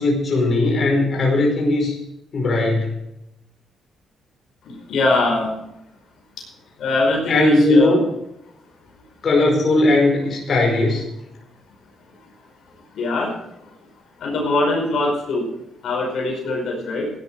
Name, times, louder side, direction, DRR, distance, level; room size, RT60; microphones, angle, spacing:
voice 1, 0.0-1.9 2.3-3.0 7.3-8.0 9.2-11.0, left 2 dB, 45° left, -1 dB, 5.1 m, -18 dB
voice 2, 4.6-5.5 6.8-8.0 12.9-13.4 14.2-15.5 15.8-17.1, left 2 dB, 70° left, 0 dB, 5.0 m, -22 dB
16.0 x 10.5 x 4.8 m, 0.84 s
cardioid pair, 90°, 0 cm